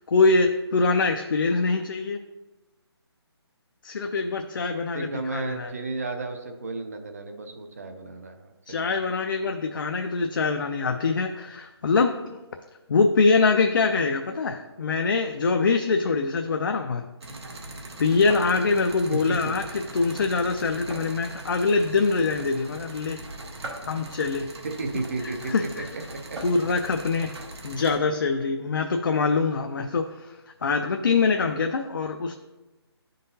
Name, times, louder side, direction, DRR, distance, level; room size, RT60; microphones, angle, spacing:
voice 1, 0.0-2.2 3.8-5.7 8.7-12.4 12.9-17.0 18.0-23.2 23.8-24.5 25.2-25.9 26.4-27.3 27.6-32.3, left 4 dB, 50° left, 5 dB, 0.4 m, -24 dB
voice 2, 4.9-8.9 19.1-19.5 24.6-25.8 26.1-26.4, right 3 dB, 35° right, 6 dB, 0.4 m, -33 dB
sound 1, 17.2-28.0, right 2 dB, 75° right, 1.1 m, -40 dB
10.0 x 3.8 x 2.7 m, 1.1 s
hypercardioid pair, 170°, 14 cm